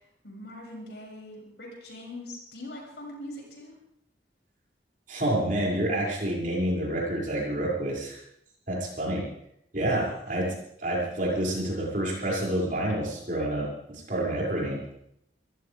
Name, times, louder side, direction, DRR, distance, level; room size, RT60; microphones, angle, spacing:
voice 1, 0.2-3.7 9.9-10.1, left 1 dB, 75° left, -2 dB, 7.3 m, -41 dB
voice 2, 5.1-8.2 8.7-9.2 9.7-10.0 10.3-14.8, right 1 dB, 50° right, -3 dB, 6.5 m, -28 dB
24.5 x 15.5 x 3.6 m, 0.75 s
head